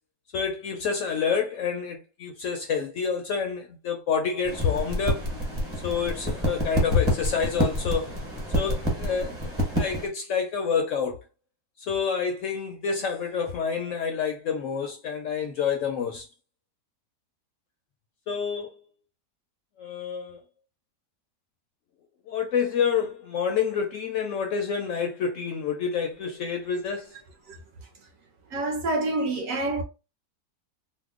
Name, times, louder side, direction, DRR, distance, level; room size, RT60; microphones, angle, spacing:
voice 1, 0.3-5.3 5.8-8.2 8.5-11.2 11.8-16.3 18.3-18.8 19.8-20.4 22.3-27.1, left 6 dB, 70° left, 0.8 m, -28 dB
sound 1, 4.4-10.1, equal, 20° right, 0.9 m, -28 dB
voice 2, 28.5-29.8, right 2 dB, 65° right, 0.8 m, -27 dB
2.8 x 2.1 x 3.5 m
omnidirectional pair, 1.8 m